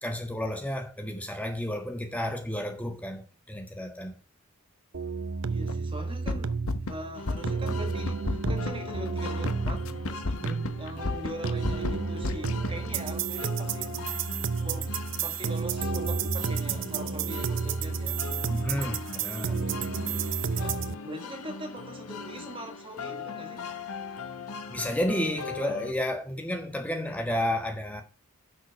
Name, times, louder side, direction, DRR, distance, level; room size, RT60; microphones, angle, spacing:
voice 1, 0.0-4.1 10.4-10.7 18.5-19.6 24.7-28.0, left 1 dB, 5° left, 1.5 m, -31 dB
sound 1, 4.9-20.9, right 5 dB, 55° right, 0.6 m, -31 dB
voice 2, 5.5-6.6 6.9-10.2 10.8-13.9 14.6-14.9 15.2-18.2 20.6-23.7, right 1 dB, 25° right, 1.4 m, -42 dB
sound 2, 5.7-5.8 6.1-6.9 7.3-7.7 8.1-12.9, left 2 dB, 70° left, 1.0 m, -31 dB
sound 3, 7.1-25.9, left 4 dB, 90° left, 1.6 m, -41 dB
10.5 x 6.2 x 5.6 m
head